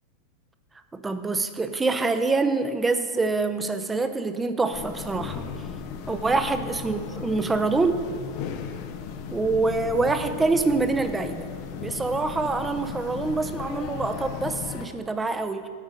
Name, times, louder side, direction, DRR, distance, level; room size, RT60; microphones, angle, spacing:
voice 1, 0.9-5.5 6.1-8.1 9.3-11.5 11.8-15.7, right 3 dB, 15° right, 8 dB, 0.6 m, -25 dB
sound 1, 4.7-14.9, left 7 dB, 55° left, 0.7 m, -36 dB
8.3 x 5.0 x 6.2 m, 2.2 s
hypercardioid pair, 95°, 0 cm